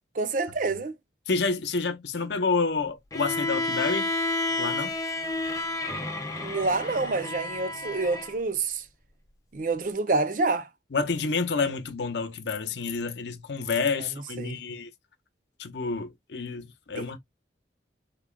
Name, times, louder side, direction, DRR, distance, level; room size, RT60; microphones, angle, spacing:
voice 1, 0.1-0.9 6.4-8.8 9.5-10.7 14.4-14.6 17.0-17.2, right 3 dB, 45° right, 0.5 m, -27 dB
voice 2, 1.3-4.1 4.6-4.9 10.9-14.9 15.6-17.2, left 4 dB, 75° left, 0.7 m, -29 dB
Bowed string instrument, 3.1-8.3, left 2 dB, 20° left, 0.6 m, -30 dB
3.7 x 2.1 x 3.7 m
head